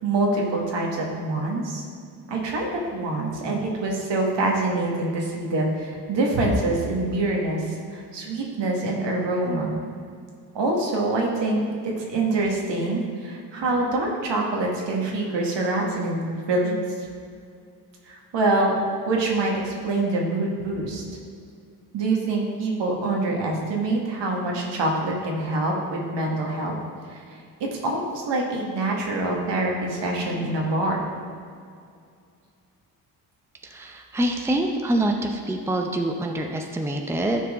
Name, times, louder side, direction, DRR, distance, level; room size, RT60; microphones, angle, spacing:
voice 1, 0.0-1.8 2.3-7.7 7.9-9.8 10.5-16.8 18.1-18.8 19.1-21.0 21.9-26.7 27.1-27.2 27.6-31.0, right 2 dB, 60° right, -1 dB, 1.8 m, -25 dB
voice 2, 33.6-37.4, right 1 dB, 5° right, 2 dB, 0.7 m, -25 dB
12.5 x 4.6 x 3.7 m, 2.3 s
hypercardioid pair, 50°, 48 cm